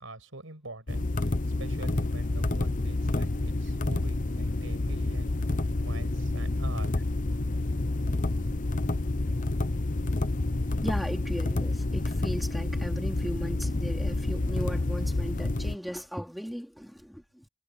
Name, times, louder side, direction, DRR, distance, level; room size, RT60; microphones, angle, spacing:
voice 1, 0.0-5.4 5.8-6.9, right 2 dB, 75° right, 6.4 m, -44 dB
sound 1, 0.9-15.8, left 2 dB, 40° left, 0.8 m, -29 dB
voice 2, 10.8-17.5, equal, ahead, 3.1 m, -37 dB
head